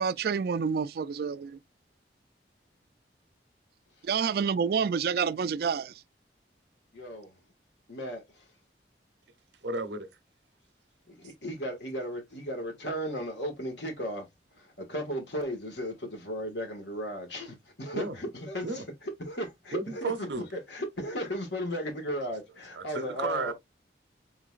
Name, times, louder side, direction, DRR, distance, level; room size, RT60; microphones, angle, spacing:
voice 1, 0.0-1.6 4.0-5.9, right 6 dB, 55° right, 0.3 m, -28 dB
voice 2, 6.9-7.4 7.9-8.5 11.1-14.3 14.5-23.5, equal, 85° left, 1.7 m, -35 dB
voice 3, 9.6-10.1 17.9-18.2 18.6-18.8 19.7-20.5 22.7-23.5, right 3 dB, 80° right, 0.8 m, -33 dB
4.5 x 4.0 x 2.4 m
head